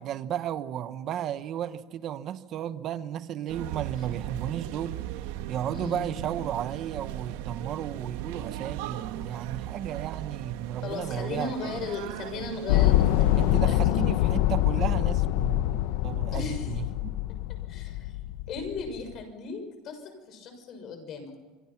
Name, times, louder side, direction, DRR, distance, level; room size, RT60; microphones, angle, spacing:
voice 1, 0.0-5.1 5.5-11.9 13.4-17.1, right 10 dB, 40° right, 1.1 m, -34 dB
sound 1, 3.5-13.6, right 13 dB, 85° right, 1.5 m, -37 dB
voice 2, 5.7-6.2 10.8-14.0 16.3-16.7 17.7-18.1 18.5-20.0 20.3-21.3, left 4 dB, 40° left, 6.6 m, -37 dB
sound 2, 12.7-19.0, left 14 dB, 70° left, 1.0 m, -25 dB
26.5 x 25.0 x 6.0 m
cardioid pair, 165°, 0 cm